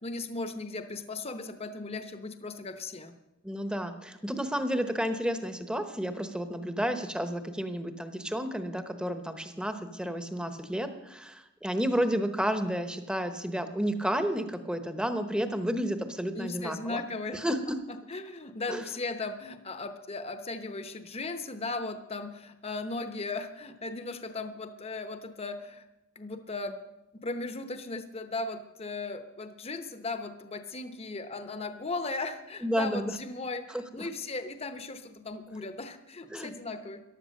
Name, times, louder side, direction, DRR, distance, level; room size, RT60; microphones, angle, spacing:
voice 1, 0.0-3.2 16.3-17.5 18.1-25.8 26.2-26.8 27.2-37.0, left 3 dB, 30° left, 9 dB, 0.9 m, -37 dB
voice 2, 3.4-17.0 17.3-17.7 18.7-18.9 32.6-33.1 33.7-34.1 36.3-36.5, equal, 5° right, 8 dB, 1.0 m, -31 dB
14.5 x 11.0 x 6.5 m, 0.95 s
head